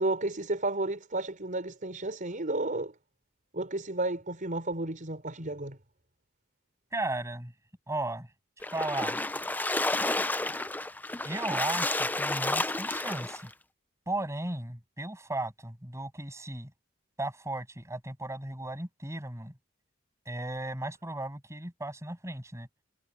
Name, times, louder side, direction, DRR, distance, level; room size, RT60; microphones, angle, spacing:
voice 1, 0.0-2.9 3.5-5.8, right 2 dB, 45° right, 4.9 m, -32 dB
voice 2, 6.9-7.5 7.9-8.3 8.7-9.2 11.2-13.5 14.1-16.7 17.2-19.5 20.3-22.7, right 2 dB, 15° right, 7.6 m, -35 dB
Splash splatter, 8.6-13.5, left 2 dB, 10° left, 0.6 m, -31 dB
head